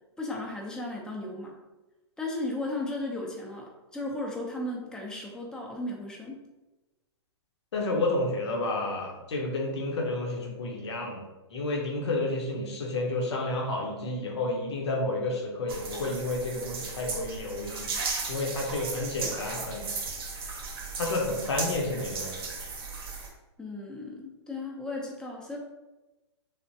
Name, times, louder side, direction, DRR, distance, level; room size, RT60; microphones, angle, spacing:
voice 1, 0.2-1.6 2.2-6.4 23.6-25.6, left 2 dB, 5° left, -1 dB, 0.5 m, -35 dB
voice 2, 7.7-11.2 11.5-17.9 18.3-19.9 21.0-22.4, left 2 dB, 75° left, -1 dB, 0.8 m, -30 dB
sound 1, 15.7-23.3, right 4 dB, 60° right, 0.7 m, -36 dB
3.3 x 2.1 x 2.7 m, 1.1 s
hypercardioid pair, 125°, 14 cm